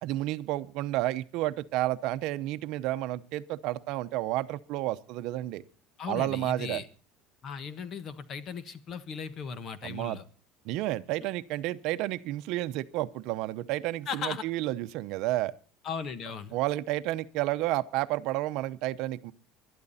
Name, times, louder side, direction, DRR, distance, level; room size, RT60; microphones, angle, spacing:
voice 1, 0.0-5.6 6.1-6.8 9.8-10.2 10.6-15.5 16.5-19.3, right 16 dB, 65° right, 0.8 m, -31 dB
voice 2, 6.0-6.8 7.4-10.2 14.1-14.4 15.8-16.5, left 6 dB, 40° left, 1.3 m, -37 dB
21.0 x 12.0 x 4.2 m
cardioid pair, 145°, 0 cm